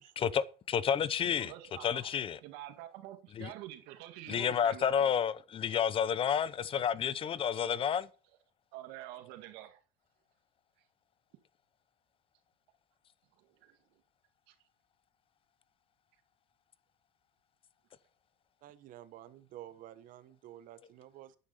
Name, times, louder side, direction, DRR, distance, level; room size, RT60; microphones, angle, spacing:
voice 1, 0.2-1.5 1.8-2.4 3.4-3.5 4.3-8.1, left 8 dB, 35° left, 0.9 m, -30 dB
voice 2, 1.4-2.2 2.4-5.1 8.7-9.8 13.4-13.8 14.5-14.6, right 14 dB, 75° right, 1.9 m, -47 dB
voice 3, 18.6-21.4, right 12 dB, 55° right, 1.3 m, -51 dB
9.8 x 9.6 x 5.7 m
cardioid pair, 140°, 17 cm